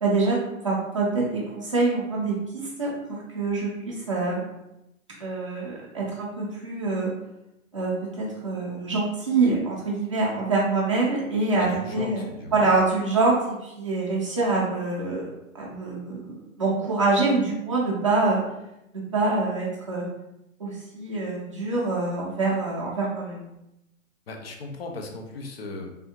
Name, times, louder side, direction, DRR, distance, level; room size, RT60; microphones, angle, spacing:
voice 1, 0.0-4.4 5.2-7.1 7.7-15.3 15.5-18.4 18.9-20.1 20.6-23.4, right 3 dB, 25° right, -6 dB, 0.4 m, -25 dB
voice 2, 11.6-12.7 24.3-25.9, left 2 dB, 50° left, 2 dB, 0.5 m, -37 dB
3.4 x 2.3 x 2.8 m, 0.87 s
hypercardioid pair, 170°, 40 cm